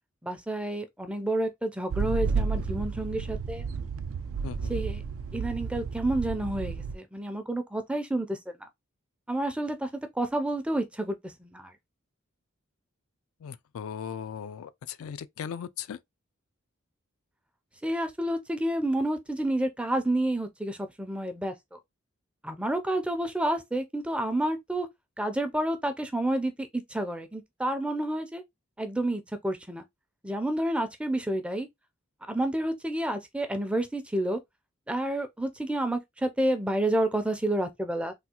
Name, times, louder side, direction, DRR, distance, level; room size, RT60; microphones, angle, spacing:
voice 1, 0.2-3.6 4.7-5.0 5.3-8.7 9.3-11.7 17.8-21.8 22.4-24.9 25.2-28.4 28.8-29.8 30.2-31.7 32.3-34.4 34.9-38.1, right 1 dB, 5° right, 0.4 m, -29 dB
sound 1, 1.9-7.0, right 5 dB, 80° right, 0.3 m, -32 dB
voice 2, 4.4-4.8 13.4-16.0, left 8 dB, 80° left, 0.3 m, -38 dB
3.4 x 2.3 x 2.8 m
head